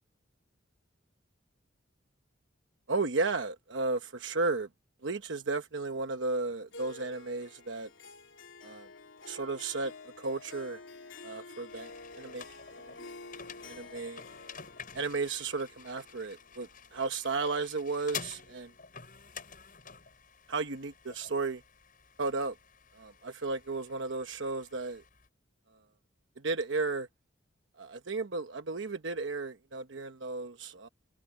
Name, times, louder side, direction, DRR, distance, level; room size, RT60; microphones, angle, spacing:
voice 1, 2.9-4.7 5.0-7.9 8.6-8.9 9.3-10.8 11.2-12.4 12.8-13.1 13.6-14.2 14.9-18.7 20.5-21.6 22.2-22.5 22.9-25.0 26.4-27.1 27.8-30.9, right 3 dB, 70° right, 1.1 m, -34 dB
Harp, 6.7-17.3, left 3 dB, 85° left, 3.4 m, -50 dB
sound 1, 11.7-25.3, left 7 dB, 45° left, 7.6 m, -49 dB
head